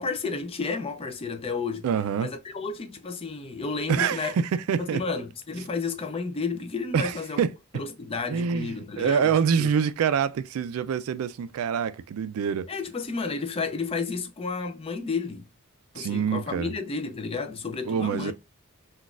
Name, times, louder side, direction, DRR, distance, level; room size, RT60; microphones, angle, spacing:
voice 1, 0.0-1.9 2.2-4.4 4.8-7.5 7.7-9.7 12.7-15.4 15.9-18.3, left 4 dB, 25° left, 0.4 m, -32 dB
voice 2, 1.8-2.3 3.9-5.0 6.9-7.5 8.3-12.7 16.0-16.7 17.9-18.3, right 7 dB, 75° right, 0.3 m, -26 dB
3.9 x 2.3 x 2.3 m
head